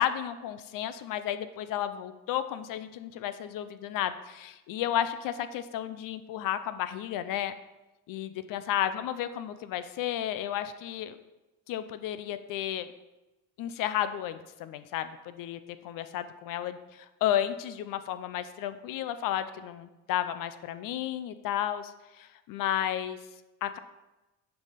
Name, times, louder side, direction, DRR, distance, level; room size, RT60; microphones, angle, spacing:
voice 1, 0.0-7.5 8.1-11.2 11.7-12.9 13.6-23.2 23.6-23.8, left 11 dB, 60° left, 12 dB, 0.7 m, -32 dB
6.9 x 5.5 x 5.8 m, 1.0 s
cardioid pair, 110°, 37 cm